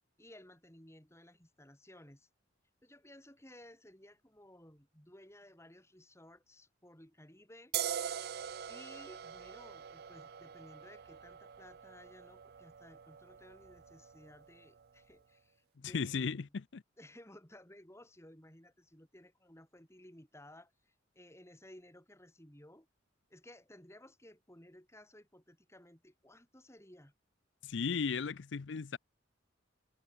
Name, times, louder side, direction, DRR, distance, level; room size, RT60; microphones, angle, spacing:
voice 1, 0.2-2.3 2.8-7.7 8.7-16.5 17.0-22.9 23.3-27.1, left 1 dB, 15° left, 7.3 m, -57 dB
sound 1, 7.7-15.0, right 9 dB, 55° right, 0.5 m, -43 dB
voice 2, 15.8-16.8 27.6-29.0, left 5 dB, 70° left, 0.5 m, -36 dB
head